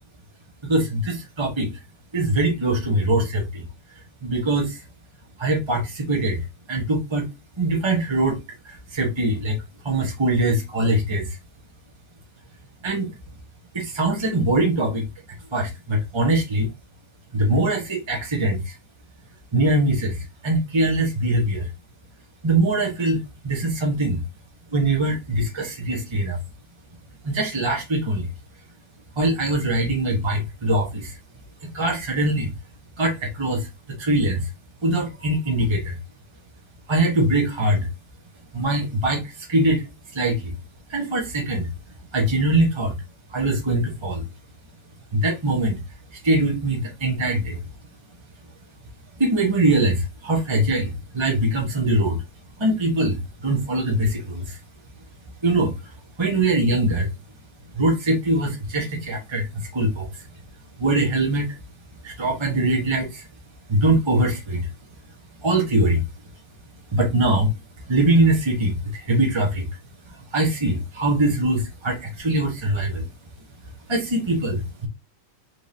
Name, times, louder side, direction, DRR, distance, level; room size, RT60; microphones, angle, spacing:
voice 1, 0.6-1.8 2.1-3.6 4.2-4.8 5.4-7.3 7.6-8.4 8.6-9.6 9.8-11.4 12.8-13.1 13.7-16.7 17.3-18.8 19.5-21.7 22.4-24.2 24.7-26.4 27.2-28.3 29.2-31.2 31.6-32.5 33.0-33.7 34.0-34.5 34.8-36.0 36.9-37.9 38.5-39.9 40.1-40.5 40.9-41.7 42.1-43.0 43.3-44.2 45.1-45.8 46.1-47.6 49.2-52.2 52.6-54.6 55.4-55.9 56.2-57.1 57.7-59.5 59.7-60.2 60.8-61.6 62.0-63.3 63.7-64.7 65.4-66.0 66.9-67.5 67.9-69.7 70.1-73.1 73.9-74.9, right 1 dB, 20° right, 0.7 m, -22 dB
4.7 x 3.6 x 2.7 m
omnidirectional pair, 2.3 m